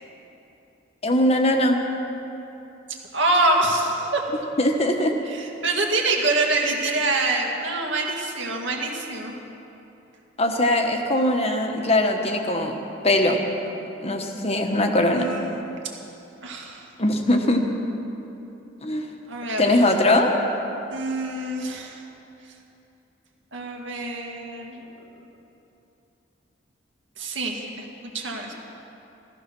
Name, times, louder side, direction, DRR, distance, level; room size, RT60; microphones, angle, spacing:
voice 1, 1.0-1.8 4.6-5.2 10.4-12.8 13.0-13.4 14.0-15.2 17.0-17.6 18.8-19.0 19.6-20.3, left 1 dB, 30° left, 3 dB, 1.2 m, -21 dB
voice 2, 3.1-4.2 5.3-9.3 15.1-15.6 16.4-16.9 19.3-19.8 20.9-22.0 23.5-24.9 27.2-27.8 28.1-28.5, right 2 dB, 65° right, 0 dB, 2.2 m, -25 dB
15.5 x 14.5 x 6.1 m, 2.9 s
head